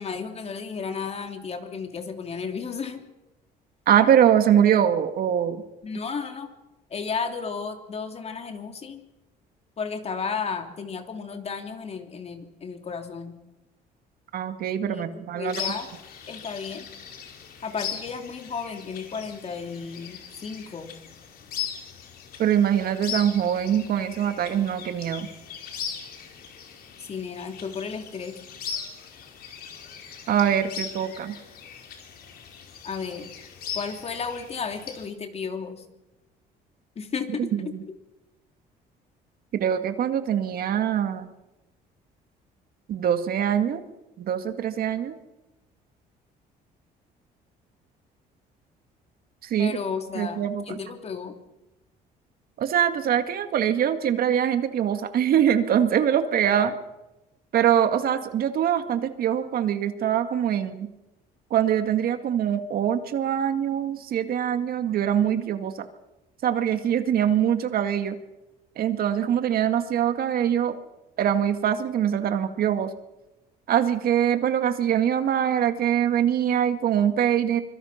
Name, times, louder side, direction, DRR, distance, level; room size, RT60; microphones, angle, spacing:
voice 1, 0.0-3.0 5.8-6.5 6.9-9.0 9.8-13.3 14.9-15.9 16.3-16.9 17.6-20.9 27.0-28.4 32.8-33.3 33.7-35.8 36.9-37.9 49.6-51.3, left 5 dB, 40° left, 5 dB, 3.1 m, -33 dB
voice 2, 3.9-5.6 14.3-15.6 22.4-25.3 30.3-31.4 37.4-37.8 39.5-41.3 42.9-43.8 44.2-45.1 49.4-49.8 50.2-50.8 52.6-56.8 57.5-60.9 61.5-65.9 66.4-68.2 68.8-70.8 71.2-72.9 73.7-77.6, right 9 dB, 60° right, 8 dB, 2.2 m, -23 dB
sound 1, 15.5-35.1, left 7 dB, 65° left, 4.7 m, -39 dB
25.5 x 22.5 x 5.9 m, 0.98 s
cardioid pair, 110°, 17 cm